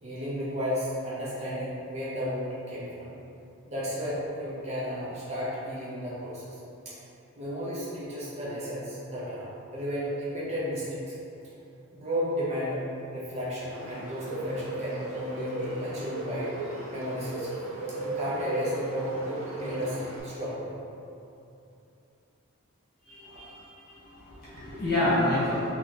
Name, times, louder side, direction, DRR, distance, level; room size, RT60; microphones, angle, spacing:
voice 1, 0.0-3.1 3.7-6.6 6.8-6.9 7.3-11.1 11.9-12.8 13.1-16.5 16.9-17.6 18.0-19.2 19.5-20.7 23.2-23.6 24.0-24.6, equal, 30° right, -8 dB, 0.7 m, -33 dB
Bird, 13.7-20.2, right 1 dB, 70° right, 0.6 m, -36 dB
voice 2, 23.0-25.7, left 1 dB, 45° left, -11 dB, 1.3 m, -29 dB
3.2 x 3.0 x 4.0 m, 2.7 s
head